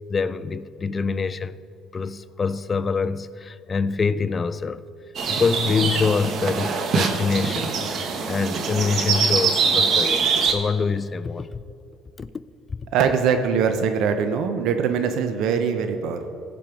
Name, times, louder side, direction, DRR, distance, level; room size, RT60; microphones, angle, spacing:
voice 1, 0.1-1.5 1.9-4.8 5.3-7.7 8.3-11.6 12.2-12.3, left 5 dB, 30° left, 0.4 m, -25 dB
sound 1, 5.1-10.5, right 5 dB, 50° right, 1.0 m, -23 dB
voice 2, 12.9-16.3, right 6 dB, 70° right, 0.7 m, -22 dB
15.5 x 5.2 x 4.6 m
cardioid pair, 105°, 0 cm